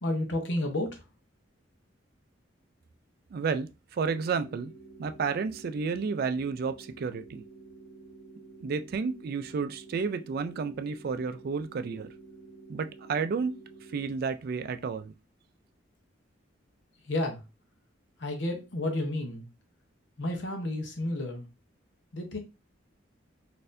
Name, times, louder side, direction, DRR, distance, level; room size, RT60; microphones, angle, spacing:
voice 1, 0.0-0.9 17.1-17.4 18.2-19.5 20.2-21.5 22.1-22.4, left 1 dB, 65° left, 0.8 m, -31 dB
voice 2, 3.3-4.7 5.0-7.4 8.6-12.1 12.7-13.5 13.9-15.1, right 5 dB, 50° right, 0.3 m, -31 dB
sound 1, 4.1-14.1, right 3 dB, 20° right, 0.8 m, -50 dB
4.1 x 2.6 x 2.5 m
head